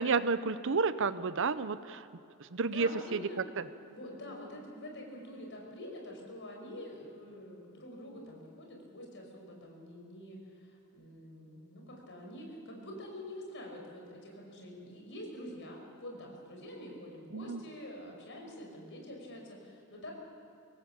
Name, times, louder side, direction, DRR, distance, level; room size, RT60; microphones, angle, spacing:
voice 1, 0.0-2.1 2.4-3.2 3.6-3.7 17.3-17.6, right 4 dB, 60° right, 14 dB, 0.7 m, -31 dB
voice 2, 2.7-3.4 3.8-20.1, left 1 dB, 55° left, 0 dB, 5.6 m, -46 dB
24.0 x 18.5 x 7.4 m, 2.8 s
head